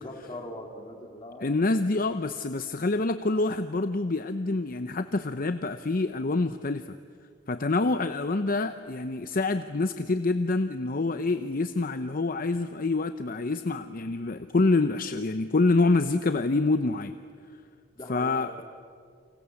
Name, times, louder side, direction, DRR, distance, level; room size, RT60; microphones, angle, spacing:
voice 1, 0.0-1.6 17.9-18.5, left 1 dB, 30° left, 2 dB, 3.5 m, -41 dB
voice 2, 1.4-7.0 7.5-17.1 18.1-18.6, left 3 dB, 50° left, 10 dB, 0.7 m, -26 dB
29.0 x 26.0 x 7.2 m, 2.2 s
head